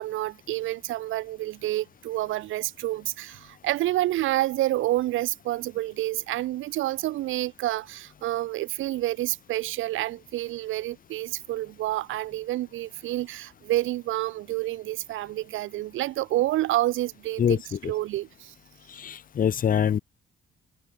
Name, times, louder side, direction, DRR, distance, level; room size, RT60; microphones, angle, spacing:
voice 1, 0.0-18.5, right 15 dB, 85° right, 1.3 m, -29 dB
voice 2, 17.4-17.9 18.9-20.0, left 8 dB, 45° left, 0.7 m, -25 dB
cardioid pair, 90°, 20 cm